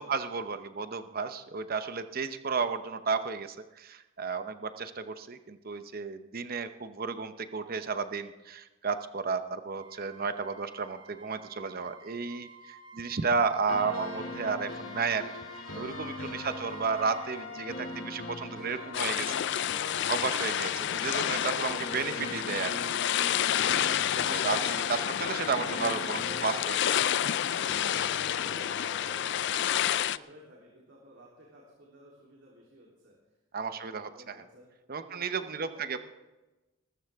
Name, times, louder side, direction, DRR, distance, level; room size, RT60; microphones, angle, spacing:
voice 1, 0.0-15.2 15.8-19.3 20.1-22.7 24.1-27.0 33.5-34.1 34.9-36.0, right 5 dB, 50° right, 9 dB, 0.8 m, -33 dB
sound 1, 9.8-21.2, right 5 dB, 25° right, 1.3 m, -53 dB
sound 2, 13.7-29.7, left 3 dB, 80° left, 2.7 m, -41 dB
voice 2, 16.4-16.7 17.4-20.1 24.3-25.1 27.0-33.1 33.6-34.7 35.0-36.0, equal, 65° right, -3 dB, 3.4 m, -54 dB
sound 3, 18.9-30.2, left 10 dB, 60° left, 0.4 m, -29 dB
20.0 x 14.5 x 3.6 m, 1.1 s
head